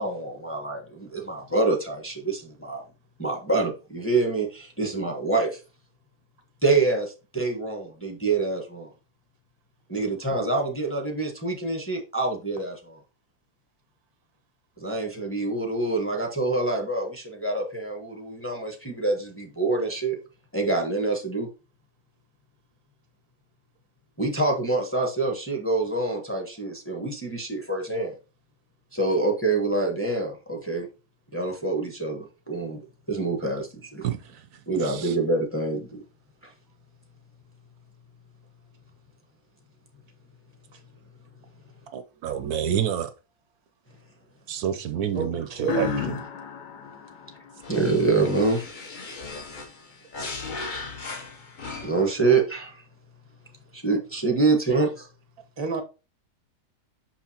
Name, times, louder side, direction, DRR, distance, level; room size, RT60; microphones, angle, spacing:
voice 1, 0.0-2.8 3.2-5.6 6.6-8.9 9.9-13.0 14.8-20.2 20.5-21.5 24.2-28.1 28.9-30.9 31.3-32.8 33.1-34.1 34.7-36.0 36.4-36.5 47.7-48.7 51.8-52.8 53.7-55.1, right 3 dB, 10° left, 0.9 m, -26 dB
voice 2, 34.0-35.2 41.9-43.1 44.5-46.2, right 9 dB, 70° right, 1.0 m, -29 dB
voice 3, 45.1-46.2 55.6-55.8, right 3 dB, 30° right, 0.5 m, -30 dB
sound 1, 45.6-48.3, left 9 dB, 90° left, 1.5 m, -34 dB
sound 2, 47.6-52.2, left 3 dB, 40° left, 0.8 m, -38 dB
6.2 x 5.7 x 2.8 m
omnidirectional pair, 1.8 m